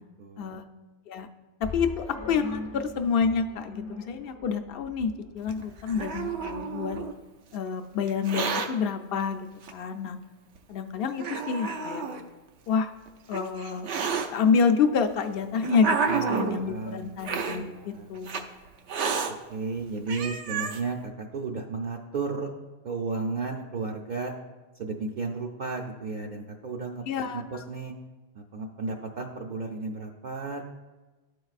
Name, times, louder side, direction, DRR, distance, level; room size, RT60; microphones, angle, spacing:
voice 1, 0.2-0.6 16.1-17.2 17.6-18.1 19.5-22.5 22.8-24.3 24.7-27.0 27.3-27.9 28.3-30.6, right 4 dB, 55° right, 0 dB, 0.6 m, -33 dB
sound 1, 1.6-7.1, left 3 dB, 20° left, 0.5 m, -42 dB
voice 2, 1.7-7.0 7.5-10.2 10.7-12.0 12.7-12.9 13.3-13.9 14.3-18.5 27.0-27.4, left 5 dB, 65° left, 8 dB, 0.7 m, -28 dB
Hiss, 5.5-7.1 8.1-8.7 9.6-9.7 10.6-10.7 11.2-12.2 13.1-14.3 15.1-16.6 17.2-17.6 18.3-18.4 18.9-19.3 19.8-19.9 20.1-20.8, right 5 dB, 85° right, 0.9 m, -30 dB
12.5 x 4.6 x 2.4 m, 1.2 s
omnidirectional pair, 1.1 m